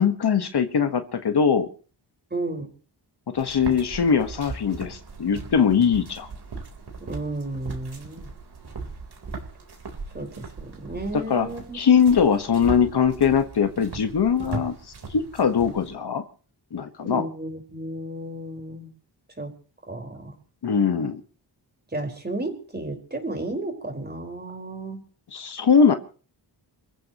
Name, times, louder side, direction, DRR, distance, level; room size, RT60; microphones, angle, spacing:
voice 1, 0.0-1.7 3.3-6.3 11.1-11.5 11.7-14.7 15.1-16.2 16.7-17.3 20.6-21.2 25.3-25.9, left 6 dB, 60° left, 8 dB, 1.5 m, -21 dB
voice 2, 2.3-2.7 7.0-8.3 10.1-10.3 10.6-12.1 17.0-18.9 19.4-19.5 19.9-20.3 21.9-25.0, right 2 dB, 20° right, 3 dB, 4.8 m, -33 dB
sound 1, 3.4-15.9, right 4 dB, 60° right, 3.9 m, -38 dB
28.5 x 15.0 x 3.0 m, 0.40 s
wide cardioid pair, 105°, 43 cm